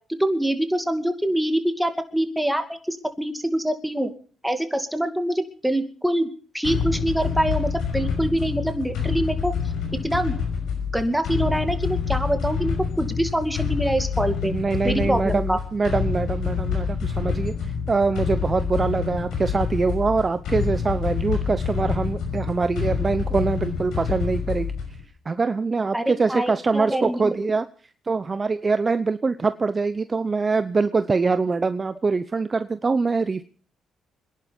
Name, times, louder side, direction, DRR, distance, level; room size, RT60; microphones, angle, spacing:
voice 1, 0.2-4.1 4.4-6.3 6.5-9.5 10.0-10.3 10.9-14.5 14.8-15.6 25.9-27.5, right 1 dB, 5° right, 6 dB, 2.4 m, -25 dB
sound 1, 6.6-25.0, left 6 dB, 85° left, 5.8 m, -27 dB
voice 2, 14.4-17.5 17.9-24.7 25.3-27.6 28.1-33.4, right 4 dB, 35° right, 11 dB, 0.8 m, -24 dB
25.0 x 11.0 x 5.3 m, 0.44 s
cardioid pair, 75°, 0 cm